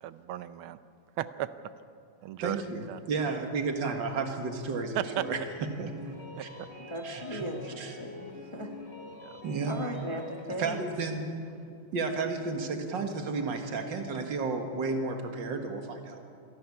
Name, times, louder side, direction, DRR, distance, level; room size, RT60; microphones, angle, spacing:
voice 1, 0.0-0.8 1.2-1.7 2.2-2.6 2.9-3.0 4.9-5.3 6.4-6.7 9.2-9.3, right 12 dB, 80° right, 13 dB, 1.5 m, -35 dB
voice 2, 2.4-5.9 6.4-6.5 7.0-7.5 7.8-7.9 9.4-9.8 10.6-11.3 11.9-16.2, right 4 dB, 60° right, 5 dB, 2.4 m, -32 dB
sound 1, 5.0-10.5, left 3 dB, 30° left, 2.7 m, -45 dB
voice 3, 6.9-8.7 9.7-10.8, equal, 15° left, 2 dB, 1.4 m, -37 dB
26.5 x 11.5 x 9.7 m, 2.4 s
omnidirectional pair, 2.3 m